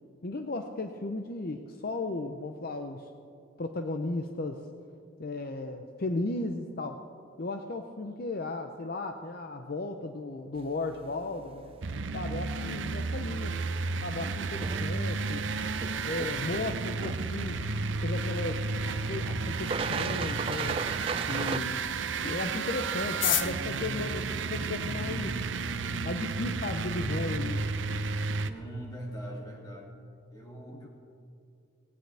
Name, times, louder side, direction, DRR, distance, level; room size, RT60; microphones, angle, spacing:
voice 1, 0.2-3.1 3.6-4.7 5.2-7.0 7.4-11.8 12.1-13.5 14.0-15.4 16.0-17.6 18.0-18.6 18.9-20.8 21.3-21.9 22.2-25.4 26.0-27.6 30.7-30.9, left 2 dB, 50° left, 6 dB, 0.7 m, -35 dB
sound 1, 10.6-21.6, right 5 dB, 30° right, 0.4 m, -39 dB
sound 2, 11.8-28.5, right 4 dB, 80° right, 0.7 m, -32 dB
sound 3, 23.0-25.3 26.1-26.2 26.4-26.5 26.8-27.2 27.6-27.7 27.8-28.3 28.6-28.8 29.1-29.4, left 12 dB, 85° left, 0.7 m, -33 dB
voice 2, 28.4-30.0 30.3-30.9, right 1 dB, 20° left, -2 dB, 2.7 m, -41 dB
18.0 x 17.5 x 3.4 m, 2.5 s
head